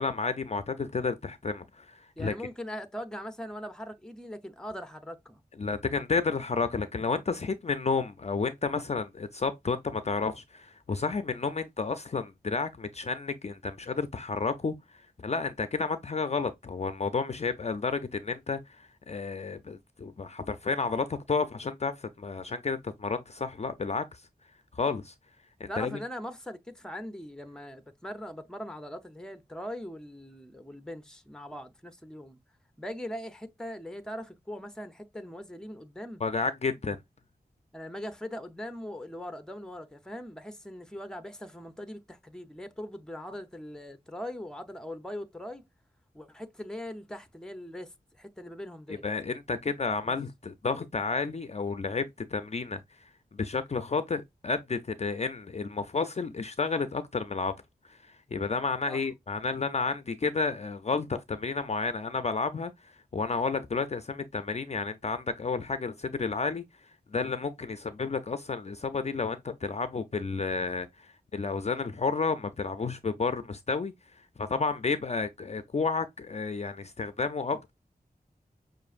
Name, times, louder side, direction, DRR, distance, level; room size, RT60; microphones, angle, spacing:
voice 1, 0.0-2.3 5.6-14.7 15.2-24.2 24.7-25.1 25.6-26.0 36.2-37.0 49.0-52.8 53.3-57.5 57.9-58.0 58.3-62.7 63.1-66.6 67.1-73.9 74.4-77.7, left 4 dB, 40° left, 0.4 m, -31 dB
voice 2, 2.2-5.4 25.7-32.4 32.8-36.2 37.7-45.6 46.1-49.1 50.0-50.2 58.9-59.0, equal, 5° left, 0.7 m, -41 dB
6.1 x 2.5 x 2.4 m
wide cardioid pair, 75°, 17 cm